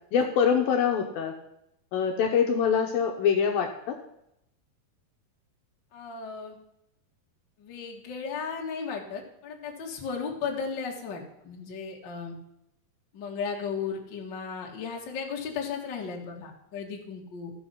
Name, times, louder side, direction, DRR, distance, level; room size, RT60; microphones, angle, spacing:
voice 1, 0.1-1.3 1.9-4.0, left 7 dB, 70° left, 3 dB, 2.4 m, -24 dB
voice 2, 5.9-6.6 7.6-12.4 13.1-17.5, left 5 dB, 40° left, 0 dB, 1.6 m, -35 dB
14.0 x 6.9 x 5.7 m, 0.80 s
omnidirectional pair, 4.8 m